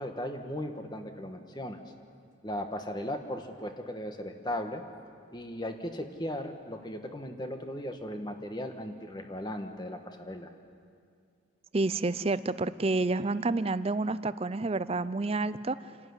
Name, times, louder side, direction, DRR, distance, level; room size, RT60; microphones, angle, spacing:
voice 1, 0.0-1.8 2.4-4.8 5.3-10.5, left 1 dB, 20° left, 5 dB, 1.4 m, -37 dB
voice 2, 11.7-15.9, right 3 dB, 30° right, 15 dB, 0.5 m, -29 dB
27.5 x 12.5 x 9.6 m, 2.3 s
head